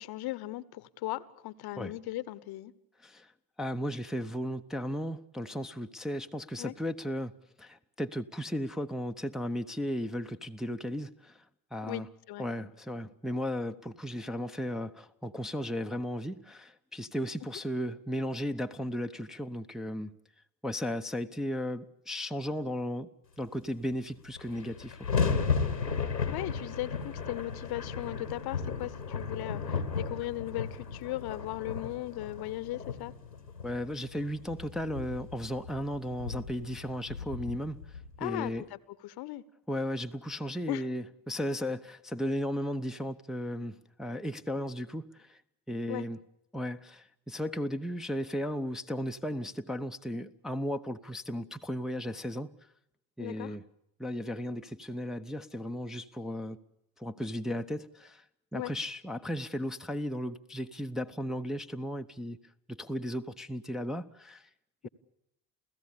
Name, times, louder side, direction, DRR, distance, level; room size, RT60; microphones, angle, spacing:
voice 1, 0.0-2.7 6.6-6.7 11.8-12.5 26.3-33.1 38.2-39.4 40.7-40.8 45.9-46.0 53.2-53.6 58.5-58.7 64.8-64.9, left 16 dB, 50° left, 1.0 m, -38 dB
voice 2, 3.6-7.3 7.6-11.4 11.7-12.1 12.4-20.1 20.6-23.1 23.4-25.1 33.6-38.7 39.7-45.4 45.7-46.2 46.5-52.5 53.2-53.6 54.0-56.6 57.0-58.2 58.5-62.4 62.7-64.5, equal, ahead, 0.8 m, -35 dB
sound 1, 23.9-24.0 24.2-38.5, left 5 dB, 90° left, 1.4 m, -35 dB
29.5 x 16.5 x 8.5 m
figure-of-eight pair, 50°, 48 cm